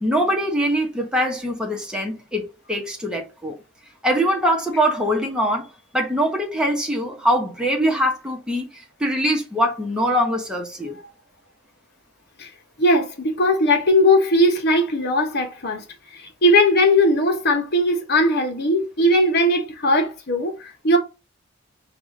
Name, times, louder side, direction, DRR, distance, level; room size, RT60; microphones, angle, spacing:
voice 1, 0.0-3.6 4.0-5.7 5.9-11.0, equal, 5° right, 1.0 m, -23 dB
voice 2, 12.8-15.8 16.1-21.0, left 1 dB, 60° left, 1.1 m, -19 dB
4.9 x 2.5 x 3.7 m
head